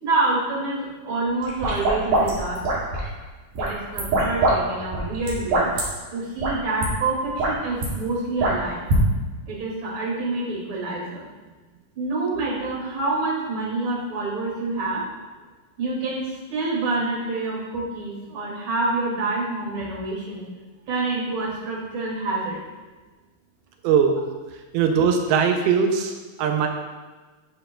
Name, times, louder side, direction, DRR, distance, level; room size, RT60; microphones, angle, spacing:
voice 1, 0.0-2.8 3.6-5.7 6.1-8.8 9.5-11.2 12.0-15.0 15.8-20.4 20.9-22.6, right 2 dB, 40° right, -5 dB, 2.5 m, -27 dB
sound 1, 1.4-3.1 3.6-4.6 4.8-5.8 6.4-6.5 6.8-6.9 7.2-7.9 8.4-9.0, right 2 dB, 65° right, 3.4 m, -22 dB
voice 2, 23.8-24.2 24.7-26.1 26.4-26.7, right 6 dB, 85° right, 4 dB, 2.5 m, -20 dB
9.7 x 7.6 x 2.2 m, 1.3 s
omnidirectional pair, 4.3 m